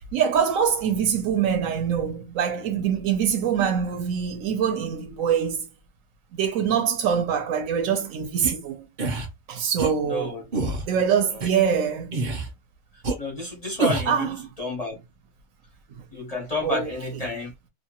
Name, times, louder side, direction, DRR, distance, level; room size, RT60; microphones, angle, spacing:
voice 1, 0.1-5.7 6.3-8.9 9.5-10.3 10.8-12.2 14.1-14.4 15.9-16.0 16.6-16.9, right 7 dB, 70° right, 0.9 m, -24 dB
sound 1, 8.4-8.5 9.0-9.3 9.8-9.9 10.5-10.8 11.4-11.5 12.1-12.5 13.0-13.1 13.8-14.2, right 3 dB, 50° right, 0.5 m, -26 dB
voice 2, 10.1-10.5 13.2-15.0 16.1-17.5, left 2 dB, 40° left, 0.5 m, -30 dB
2.7 x 2.3 x 2.8 m
omnidirectional pair, 1.6 m